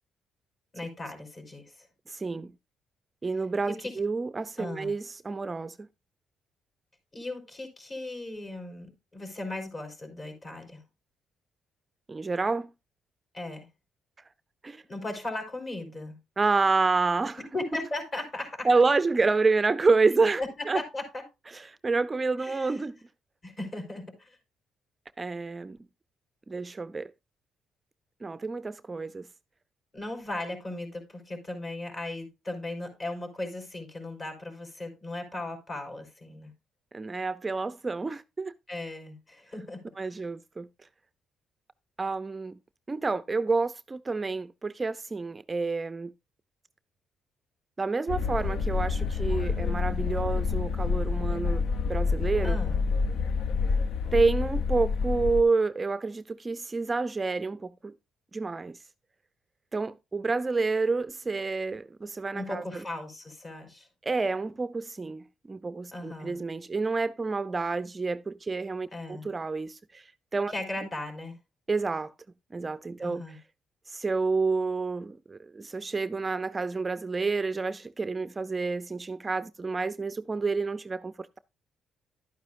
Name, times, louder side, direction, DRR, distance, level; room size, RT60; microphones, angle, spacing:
voice 1, 0.7-1.9 3.7-3.9 4.6-4.9 7.1-10.8 13.3-13.7 14.8-16.2 17.5-18.7 20.4-21.2 22.4-22.8 23.4-24.4 29.9-36.5 38.7-39.9 52.4-52.8 62.3-63.9 65.9-66.4 68.9-69.3 70.5-71.4 73.0-73.4, left 2 dB, 35° left, 4.4 m, -37 dB
voice 2, 2.1-2.5 3.2-5.8 12.1-12.7 14.6-14.8 16.4-17.4 18.6-20.8 21.5-23.0 25.2-25.8 26.5-27.1 28.2-29.3 36.9-38.5 40.0-40.7 42.0-42.6 42.9-46.1 47.8-51.6 51.9-52.6 54.1-57.9 58.3-58.8 59.7-62.8 64.0-70.5 71.7-72.1 72.5-73.4 73.9-81.4, right 4 dB, 25° right, 0.4 m, -29 dB
sound 1, 48.1-55.4, left 5 dB, 75° left, 0.7 m, -28 dB
11.5 x 9.4 x 2.5 m
cardioid pair, 90°, 0 cm